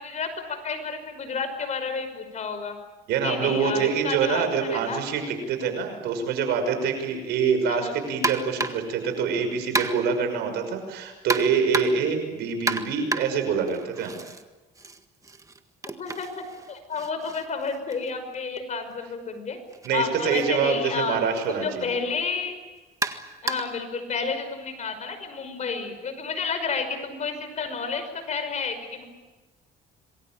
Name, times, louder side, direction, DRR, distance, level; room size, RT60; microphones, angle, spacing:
voice 1, 0.0-2.8 3.2-5.0 7.7-8.0 15.9-16.3 16.7-19.6 19.9-21.2 21.5-22.5 23.4-29.0, left 5 dB, 45° left, 8 dB, 5.6 m, -31 dB
voice 2, 3.1-14.2 19.8-21.9, right 6 dB, 80° right, 6 dB, 6.0 m, -25 dB
sound 1, 8.2-8.9 9.7-10.2 11.3-12.1 12.7-14.4 14.7-18.6 19.7-19.9 20.3-20.4 21.4-21.5 23.0-23.8, right 3 dB, 20° right, 1.7 m, -31 dB
27.0 x 21.5 x 9.0 m, 1.2 s
cardioid pair, 110°, 17 cm